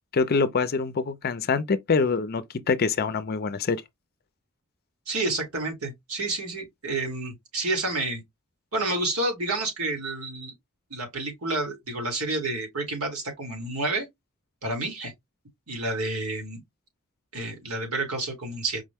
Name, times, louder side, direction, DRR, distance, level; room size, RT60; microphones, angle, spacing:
voice 1, 0.1-3.8, left 4 dB, 45° left, 0.5 m, -25 dB
voice 2, 5.1-8.2 8.7-10.5 10.9-14.1 14.6-15.1 15.7-16.6 17.3-18.8, right 2 dB, 85° right, 1.9 m, -29 dB
4.9 x 2.1 x 3.4 m
head